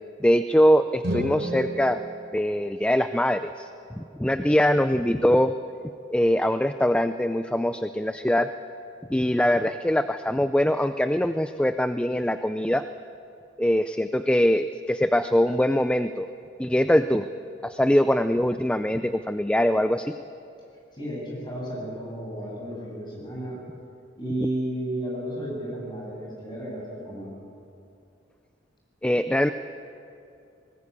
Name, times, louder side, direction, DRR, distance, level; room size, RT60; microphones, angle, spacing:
voice 1, 0.2-2.0 2.3-3.7 4.0-5.5 6.1-8.5 9.1-12.8 13.6-16.3 16.6-17.3 17.6-20.2 29.0-29.5, equal, 5° left, 10 dB, 0.4 m, -22 dB
sound 1, 1.0-3.2, right 1 dB, 55° right, 3.8 m, -33 dB
voice 2, 20.9-23.6 24.2-27.3, right 1 dB, 25° left, -3 dB, 8.0 m, -32 dB
20.0 x 19.5 x 8.5 m, 2.6 s
head